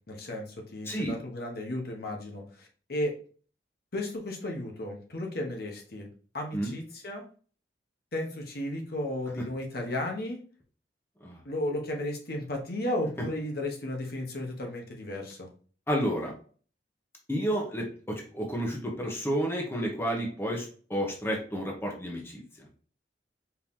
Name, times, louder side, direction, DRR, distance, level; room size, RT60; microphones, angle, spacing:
voice 1, 0.1-3.2 3.9-6.1 6.3-7.2 8.1-10.4 11.4-15.5, left 1 dB, 60° left, 1 dB, 1.1 m, -34 dB
voice 2, 0.9-1.2 6.5-6.7 11.2-11.4 15.9-16.3 17.3-22.8, equal, 15° left, 0 dB, 0.9 m, -31 dB
4.5 x 2.8 x 3.6 m, 0.42 s
head